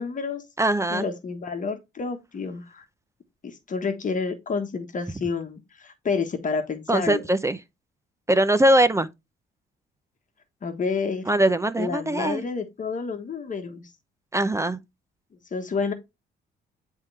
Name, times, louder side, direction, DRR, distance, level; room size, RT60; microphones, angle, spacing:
voice 1, 0.0-0.4 0.9-2.8 3.4-7.3 10.6-11.3 11.8-13.9 15.5-15.9, left 5 dB, 40° left, 1.3 m, -29 dB
voice 2, 0.6-1.1 6.9-7.6 8.3-9.1 11.3-12.5 14.3-14.8, right 1 dB, 15° right, 0.6 m, -21 dB
9.7 x 3.7 x 3.2 m
cardioid pair, 90°, 20 cm